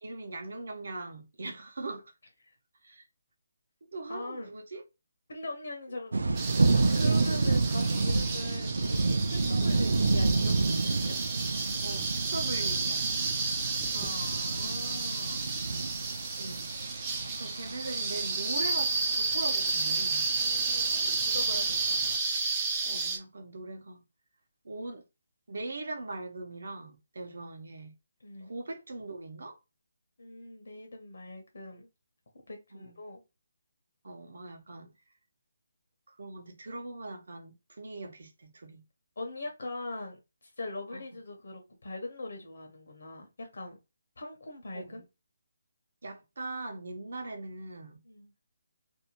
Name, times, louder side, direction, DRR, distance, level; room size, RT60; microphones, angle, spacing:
voice 1, 0.0-2.1 2.8-3.1 3.8-4.8 7.1-7.4 11.8-13.1 16.3-16.7 17.0-17.1 17.4-20.3 22.8-24.0 24.6-25.0 25.5-27.9 28.4-29.6 32.7-33.0 34.0-34.9 36.1-38.8 40.9-41.2 44.7-45.0 46.0-48.0, right 2 dB, 60° right, 0.8 m, -41 dB
voice 2, 4.1-4.5 5.3-6.2 6.9-9.0 9.3-11.2 13.9-15.4 20.4-22.1 28.2-28.5 30.2-31.9 32.5-33.2 39.2-40.2 40.6-43.8 44.2-45.0 48.1-48.3, left 2 dB, 60° left, 0.7 m, -41 dB
sound 1, 6.1-22.2, right 3 dB, 80° right, 0.4 m, -30 dB
sound 2, 6.4-23.2, right 4 dB, 10° right, 0.3 m, -32 dB
2.6 x 2.2 x 2.9 m
hypercardioid pair, 180°, 0 cm